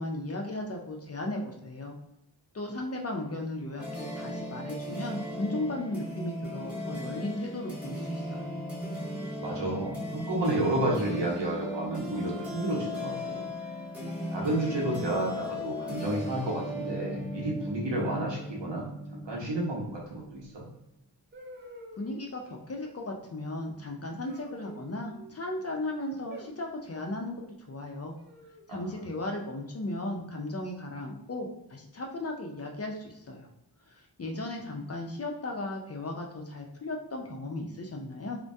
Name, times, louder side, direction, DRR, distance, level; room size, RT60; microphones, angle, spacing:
voice 1, 0.0-1.9 2.5-8.5 22.0-27.4 27.7-28.1 28.7-33.5 33.9-38.4, left 2 dB, 35° left, 2 dB, 0.4 m, -36 dB
sound 1, 3.8-20.4, left 1 dB, 5° right, 1.0 m, -37 dB
voice 2, 9.4-13.5 14.3-20.7 28.7-28.9, right 1 dB, 80° right, -3 dB, 0.8 m, -31 dB
sound 2, 11.0-11.9 13.2-13.6 14.0-14.4 15.8-16.4 17.9-18.5 20.4-20.5 21.3-22.3 24.2-25.3 26.3-26.9 28.2-28.7, right 1 dB, 30° right, 0.4 m, -49 dB
2.2 x 2.1 x 2.6 m, 0.84 s
wide cardioid pair, 85°, 42 cm